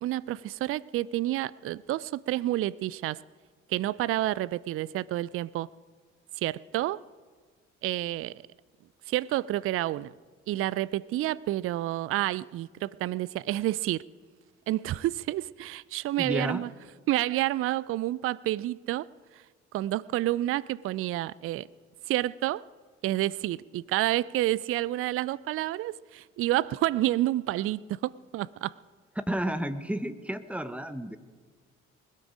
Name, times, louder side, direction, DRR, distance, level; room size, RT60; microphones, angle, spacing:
voice 1, 0.0-3.2 3.7-5.7 6.4-7.0 7.8-8.3 9.1-10.1 10.5-14.0 14.7-16.7 17.1-19.1 19.7-21.7 22.1-22.6 23.0-28.7, right 15 dB, 40° right, 0.4 m, -29 dB
voice 2, 16.2-16.6 29.3-31.2, equal, 5° right, 1.0 m, -31 dB
20.0 x 13.0 x 5.0 m
figure-of-eight pair, 45°, 37 cm